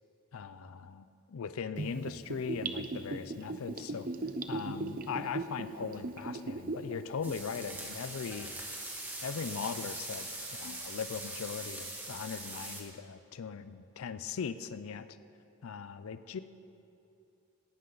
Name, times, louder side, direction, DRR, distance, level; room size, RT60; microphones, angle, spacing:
voice 1, 0.3-4.1 4.5-8.6 9.2-15.1 15.6-16.4, left 6 dB, 65° left, 13 dB, 0.4 m, -39 dB
Gurgling / Bathtub (filling or washing), 1.8-6.9 7.3-7.4, right 3 dB, 40° right, 0.7 m, -37 dB
sound 1, 7.2-12.8, right 2 dB, 10° right, 1.5 m, -42 dB
17.5 x 11.0 x 3.9 m, 2.7 s
head